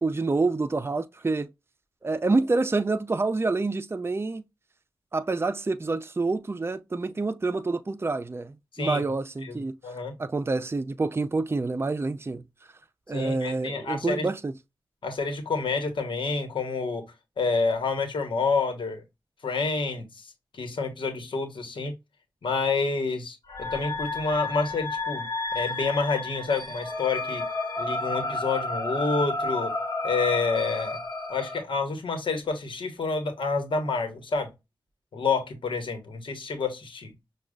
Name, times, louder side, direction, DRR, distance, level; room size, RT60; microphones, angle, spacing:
voice 1, 0.0-1.5 2.0-4.4 5.1-9.7 10.2-12.5 13.1-14.5, right 3 dB, 30° right, 0.5 m, -27 dB
voice 2, 9.4-10.1 13.1-14.3 15.0-17.1 17.4-19.0 19.4-20.3 20.5-21.9 22.4-25.3 25.5-27.4 27.8-29.7 30.0-31.0 31.3-34.5 35.1-37.1, left 4 dB, 85° left, 1.1 m, -28 dB
sound 1, 23.5-31.6, left 2 dB, 55° left, 1.4 m, -31 dB
6.1 x 2.4 x 2.3 m
cardioid pair, 50°, 8 cm